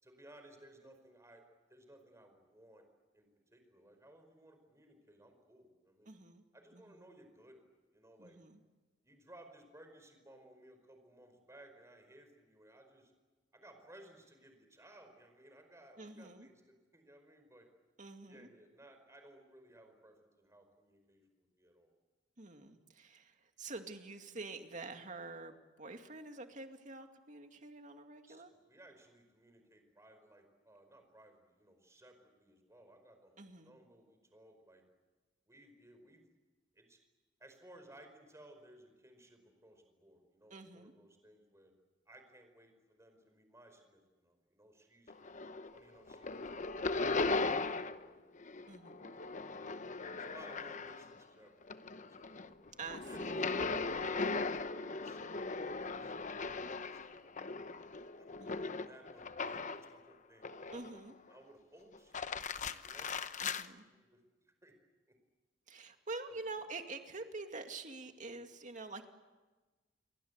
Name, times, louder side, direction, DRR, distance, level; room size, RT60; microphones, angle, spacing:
voice 1, 0.0-2.8 3.1-6.1 6.5-7.6 7.9-8.4 9.0-13.1 13.5-17.7 18.3-21.9 28.3-34.8 35.5-36.3 36.7-37.0 37.4-41.7 42.0-45.1 45.7-48.2 49.1-49.7 50.1-52.6 53.0-53.5 53.9-54.7 54.9-56.3 56.6-57.8 58.2-60.8 61.3-63.1 63.9-64.7 66.3-66.6, right 1 dB, 15° right, 6 dB, 5.0 m, -60 dB
voice 2, 6.1-6.4 6.7-7.0 8.2-8.6 16.0-16.5 18.0-18.5 22.4-28.5 33.4-33.7 40.5-40.9 48.7-49.1 52.8-53.4 53.7-54.1 58.4-58.7 60.7-61.1 63.4-63.8 65.7-69.1, right 3 dB, 40° right, 5 dB, 2.3 m, -47 dB
sound 1, 45.1-45.8 46.1-48.1 48.4-51.2 51.6-59.9 60.4-61.1 61.9-63.7, left 3 dB, 40° left, 0.9 m, -38 dB
29.5 x 23.0 x 8.1 m, 1.2 s
head